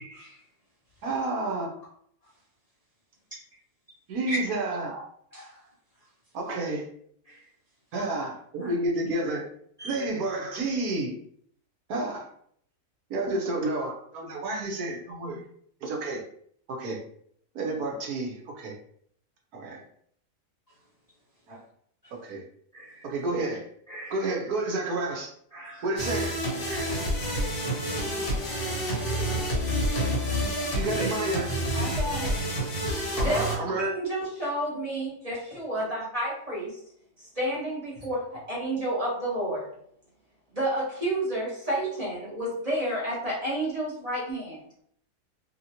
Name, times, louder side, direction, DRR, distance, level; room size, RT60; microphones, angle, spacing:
voice 1, 1.0-1.7 4.1-5.0 6.3-6.9 7.9-9.4 9.8-11.1 11.9-12.3 13.1-15.4 15.8-16.2 16.7-17.0 17.5-18.8 19.5-19.8 21.5-21.6 22.2-22.4 23.0-23.6 24.1-25.3 25.8-26.4 30.7-31.5 33.2-33.9, right 2 dB, 70° right, 0 dB, 1.2 m, -30 dB
voice 2, 25.5-25.8 26.7-27.0, right 1 dB, 60° left, -6 dB, 0.4 m, -38 dB
sound 1, 26.0-33.6, equal, 45° left, 0.9 m, -28 dB
voice 3, 31.7-32.3 33.2-36.8 37.2-39.7 40.5-44.6, right 1 dB, 30° right, -6 dB, 0.9 m, -30 dB
2.8 x 2.8 x 2.7 m, 0.64 s
omnidirectional pair, 1.7 m